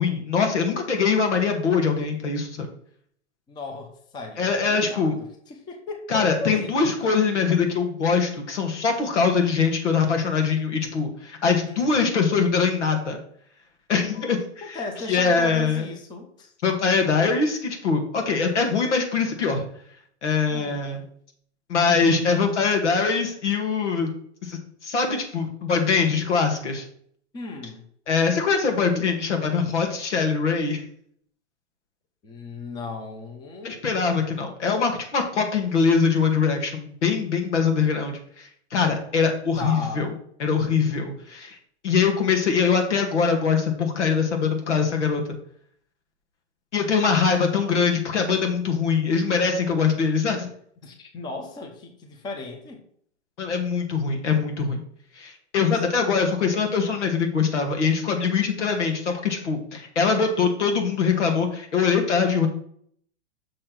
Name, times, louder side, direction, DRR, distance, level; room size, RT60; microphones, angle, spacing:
voice 1, 0.0-2.7 4.4-5.2 6.1-13.2 13.9-14.8 15.1-15.9 16.6-19.7 20.2-21.0 21.7-24.1 24.4-26.9 28.1-30.8 33.6-40.1 40.4-41.6 41.8-45.4 46.7-50.5 53.4-54.8 55.2-62.5, left 5 dB, 85° left, 3 dB, 2.1 m, -23 dB
voice 2, 3.5-7.2 11.7-12.1 14.1-16.5 20.5-21.0 27.3-27.8 32.2-33.8 39.6-40.1 50.8-52.8, left 3 dB, 10° left, 4 dB, 0.8 m, -37 dB
6.3 x 4.4 x 5.9 m, 0.63 s
hypercardioid pair, 150°, 34 cm